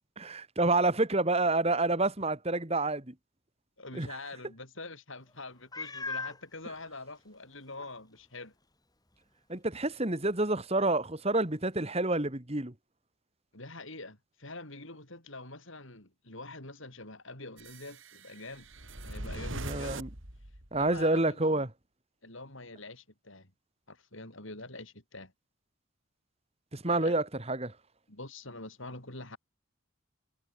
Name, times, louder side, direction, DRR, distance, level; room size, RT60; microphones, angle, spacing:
voice 1, 0.2-3.1 3.9-4.1 9.5-12.7 19.6-20.1 20.7-21.7 26.7-27.7, right 2 dB, 30° right, 1.9 m, -28 dB
voice 2, 3.8-8.5 13.5-18.7 19.0-20.0 20.8-21.6 22.2-23.5 23.9-25.3 26.9-27.1 28.1-29.4, left 2 dB, 65° left, 6.8 m, -45 dB
Meow, 5.7-6.4 7.2-7.3 7.8-7.9 11.9-12.0, left 3 dB, 20° left, 4.2 m, -37 dB
sound 1, 17.6-21.0, right 1 dB, 65° right, 4.8 m, -42 dB
head